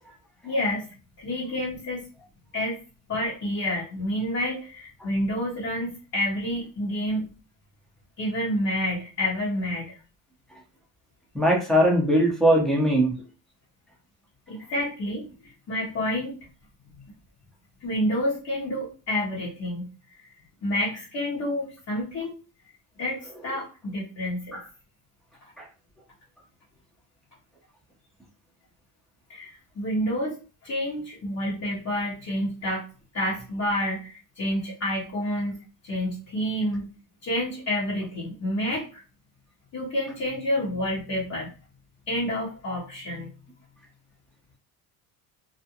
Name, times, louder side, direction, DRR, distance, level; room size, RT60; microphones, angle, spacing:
voice 1, 0.4-0.9 1.2-2.0 2.5-2.8 3.1-7.3 8.2-9.9 14.5-16.3 17.8-19.9 20.2-20.3 20.6-22.4 23.0-24.6 29.3-30.3 30.6-32.8 33.1-35.6 35.8-36.9 37.2-39.0 39.7-41.5 42.1-43.3, left 1 dB, 40° left, -5 dB, 0.9 m, -29 dB
voice 2, 11.3-13.1 24.5-24.6 25.6-25.7, equal, ahead, -2 dB, 0.8 m, -20 dB
2.4 x 2.1 x 2.8 m, 0.35 s
cardioid pair, 120°, 40 cm